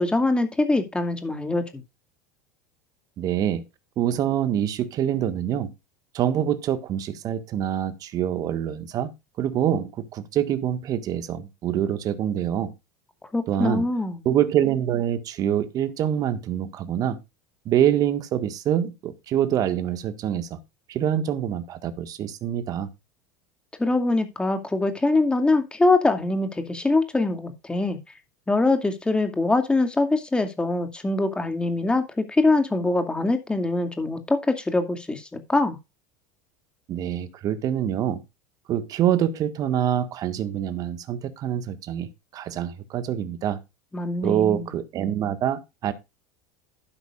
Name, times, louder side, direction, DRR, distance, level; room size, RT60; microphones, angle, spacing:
voice 1, 0.0-1.8 13.3-14.3 23.8-28.0 28.5-35.8 43.9-44.7, left 2 dB, 10° left, 2.4 m, -23 dB
voice 2, 3.2-3.6 4.0-5.7 6.1-9.1 9.4-12.7 13.5-13.9 14.3-17.2 17.7-20.6 20.9-22.9 36.9-38.2 38.7-43.6 44.2-45.9, right 10 dB, 40° right, 1.6 m, -25 dB
12.0 x 10.0 x 2.5 m
figure-of-eight pair, 75°, 9 cm